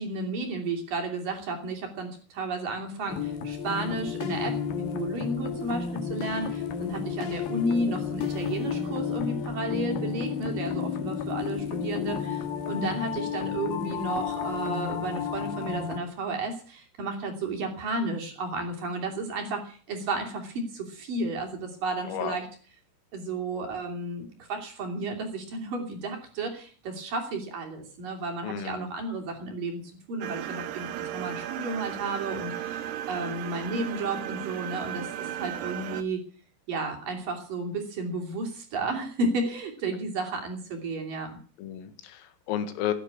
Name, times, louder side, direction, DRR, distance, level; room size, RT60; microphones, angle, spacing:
voice 1, 0.0-22.5 23.1-36.3 36.7-41.4, right 2 dB, 45° right, 2 dB, 4.1 m, -32 dB
sound 1, 3.1-16.0, left 7 dB, 60° left, 2.9 m, -32 dB
voice 2, 28.4-28.9 41.6-42.9, left 10 dB, 90° left, 10 dB, 4.5 m, -32 dB
sound 2, 30.2-36.0, right 11 dB, 70° right, 2.8 m, -35 dB
16.5 x 10.5 x 8.4 m, 0.43 s
omnidirectional pair, 5.9 m